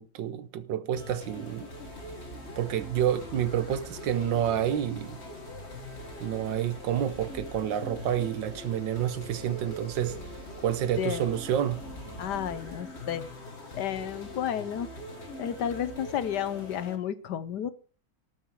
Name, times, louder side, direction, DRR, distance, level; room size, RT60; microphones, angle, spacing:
voice 1, 0.0-1.7 2.6-5.2 6.2-10.2 10.6-11.8, right 10 dB, 85° right, 1.6 m, -29 dB
sound 1, 1.0-17.0, left 1 dB, 35° left, 2.0 m, -43 dB
sound 2, 1.7-12.8, right 3 dB, 50° right, 6.2 m, -50 dB
voice 2, 12.2-13.3 13.7-14.9 15.4-17.7, left 9 dB, 70° left, 1.4 m, -32 dB
18.5 x 7.1 x 4.7 m
omnidirectional pair, 2.0 m